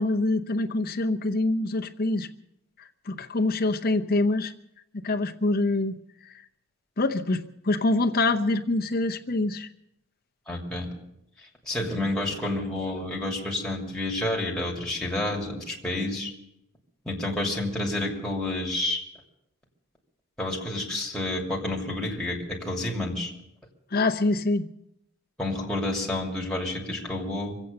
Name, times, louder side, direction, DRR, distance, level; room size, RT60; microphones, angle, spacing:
voice 1, 0.0-2.3 3.1-4.5 5.0-6.0 6.2-6.3 7.0-9.7 23.9-24.7, left 2 dB, 45° left, 5 dB, 0.8 m, -25 dB
voice 2, 10.5-10.9 11.7-16.3 17.0-19.0 20.4-23.3 25.4-27.6, left 1 dB, 5° left, -2 dB, 2.8 m, -29 dB
24.0 x 8.4 x 6.8 m, 0.82 s
head